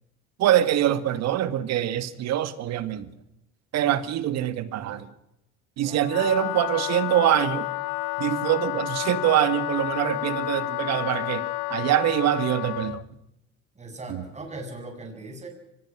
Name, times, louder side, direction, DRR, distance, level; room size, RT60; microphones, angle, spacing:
voice 1, 0.4-3.1 3.7-5.1 5.8-7.7 8.2-13.0 14.1-14.2, right 12 dB, 60° right, 12 dB, 2.0 m, -24 dB
voice 2, 5.8-6.3 13.8-15.5, right 2 dB, 25° right, 3 dB, 7.5 m, -40 dB
Wind instrument woodwind instrument, 6.0-13.0, left 23 dB, 75° left, 0.8 m, -30 dB
24.5 x 20.0 x 6.2 m, 0.87 s
supercardioid pair, 105°, 30 cm